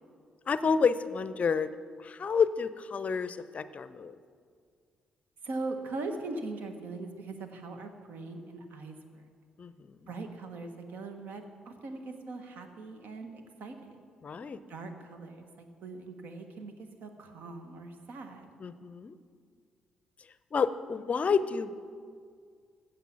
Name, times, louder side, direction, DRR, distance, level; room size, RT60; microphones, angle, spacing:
voice 1, 0.5-1.7 2.0-4.1 9.6-9.9 14.2-14.6 18.6-19.2 20.5-21.7, left 5 dB, 45° left, 14 dB, 0.5 m, -29 dB
voice 2, 5.4-9.2 10.1-14.0 14.7-18.5, right 3 dB, 60° right, 6 dB, 1.3 m, -41 dB
15.0 x 6.8 x 5.8 m, 2.1 s
figure-of-eight pair, 45°, 3 cm